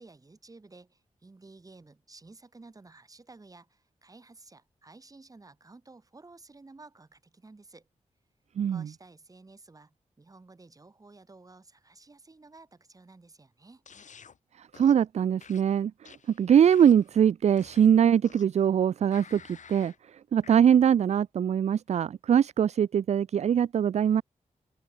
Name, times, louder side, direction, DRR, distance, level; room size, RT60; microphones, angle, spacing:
voice 1, 0.0-7.9 8.7-13.8, right 3 dB, 25° right, 6.5 m, -53 dB
voice 2, 8.6-8.9 14.6-24.2, right 8 dB, 55° right, 0.4 m, -23 dB
sound 1, 13.9-14.4 14.7-15.1 15.4-17.1 17.6-18.6 19.1-20.0 20.4-20.6, left 6 dB, 65° left, 3.8 m, -52 dB
wide cardioid pair, 150°, 14 cm